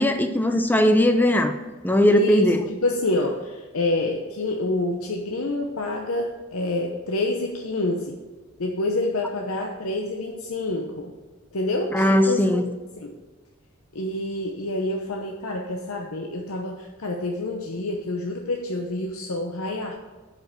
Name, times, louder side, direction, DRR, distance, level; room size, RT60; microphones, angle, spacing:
voice 1, 0.0-1.5 1.8-2.6 11.9-12.7, equal, 10° left, 7 dB, 0.6 m, -19 dB
voice 2, 2.2-8.2 8.6-11.1 11.5-12.5 13.0-13.2 13.9-19.9, left 2 dB, 90° left, 2 dB, 0.8 m, -27 dB
7.8 x 5.1 x 5.9 m, 1.3 s
head